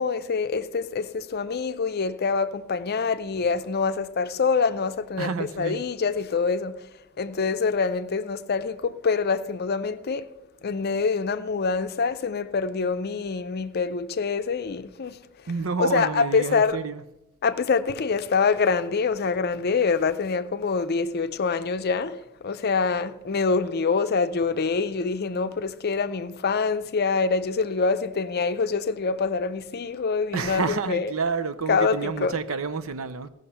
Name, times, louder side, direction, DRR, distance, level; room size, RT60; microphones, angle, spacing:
voice 1, 0.0-5.3 5.6-6.9 7.2-10.3 10.6-15.2 15.8-16.8 17.4-31.1 31.7-32.4, left 5 dB, 50° left, 0.5 m, -25 dB
voice 2, 5.2-5.9 15.5-17.0 30.3-33.3, right 5 dB, 85° right, 0.7 m, -29 dB
15.5 x 6.2 x 5.6 m
head